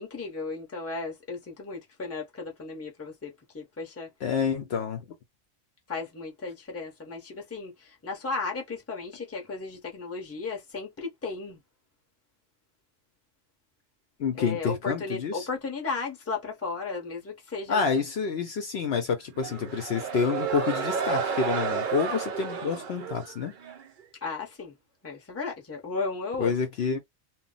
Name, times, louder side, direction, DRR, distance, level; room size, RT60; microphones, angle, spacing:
voice 1, 0.0-4.1 5.9-11.6 14.3-17.8 24.2-24.8 25.0-26.5, left 4 dB, 15° left, 0.7 m, -35 dB
voice 2, 4.2-5.0 14.2-15.5 17.7-23.5 26.4-27.0, left 5 dB, 65° left, 0.8 m, -28 dB
sound 1, 19.4-23.9, right 6 dB, 50° right, 0.6 m, -31 dB
2.2 x 2.0 x 3.8 m
omnidirectional pair, 1.3 m